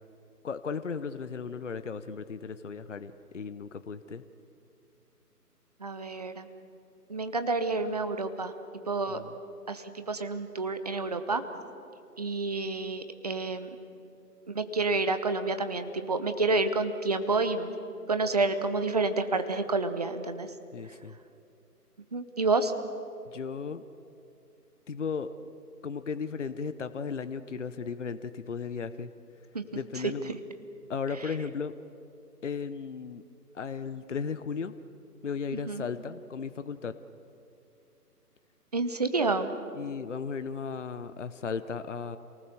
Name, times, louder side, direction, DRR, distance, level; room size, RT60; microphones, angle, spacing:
voice 1, 0.4-4.2 9.1-9.3 20.7-21.2 23.3-23.8 24.9-25.3 25.8-29.1 29.7-30.3 30.9-31.7 32.4-33.2 33.5-34.7 35.2-36.9 39.8-42.2, left 5 dB, 50° left, 12 dB, 0.8 m, -35 dB
voice 2, 5.8-6.5 7.1-8.5 8.9-9.2 9.7-11.4 12.2-13.7 14.5-17.7 18.1-20.5 22.1-22.7 29.5-29.6 35.5-35.9 38.7-39.5, right 3 dB, 25° right, 9 dB, 0.9 m, -29 dB
28.0 x 19.0 x 6.9 m, 2.5 s
figure-of-eight pair, 155°, 48 cm